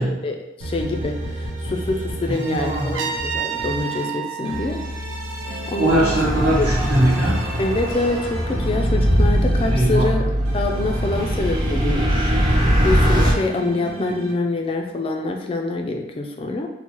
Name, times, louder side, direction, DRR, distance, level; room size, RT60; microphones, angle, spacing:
voice 1, 0.0-4.8 5.7-6.2 6.6-6.7 7.6-10.2 10.5-12.3 12.8-16.7, left 2 dB, 30° left, 3 dB, 0.3 m, -25 dB
sound 1, 0.6-4.0 4.4-10.0 10.4-14.3, equal, 85° right, 0.7 m, -33 dB
voice 2, 2.3-3.1 5.8-7.4 9.7-10.2, right 1 dB, 55° right, -10 dB, 0.9 m, -21 dB
Trumpet, 2.9-5.9, right 7 dB, 70° right, 0.4 m, -31 dB
sound 2, 5.9-13.3, equal, 20° right, 0.5 m, -21 dB
4.4 x 2.0 x 2.9 m, 0.94 s
head